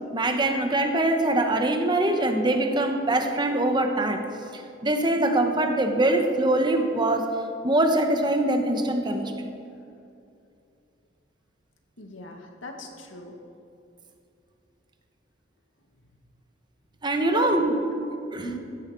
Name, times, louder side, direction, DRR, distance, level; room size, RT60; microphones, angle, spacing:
voice 1, 0.1-4.2 4.5-7.3 7.6-9.3 17.0-17.7 18.3-18.5, right 1 dB, 25° right, 5 dB, 1.1 m, -23 dB
voice 2, 12.0-13.3 17.3-17.6 17.9-18.0 18.4-18.6, left 2 dB, 85° left, 2 dB, 2.1 m, -37 dB
15.5 x 14.5 x 4.5 m, 2.6 s
head